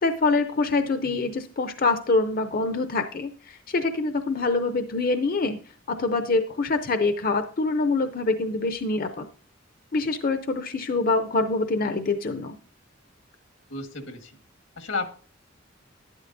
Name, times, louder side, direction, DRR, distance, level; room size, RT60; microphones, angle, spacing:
voice 1, 0.0-5.6 5.9-9.3 9.9-12.6, left 3 dB, 45° left, 8 dB, 0.6 m, -25 dB
voice 2, 13.7-14.3 14.7-15.1, left 3 dB, 90° left, 4 dB, 1.7 m, -33 dB
12.0 x 11.0 x 2.6 m, 0.41 s
head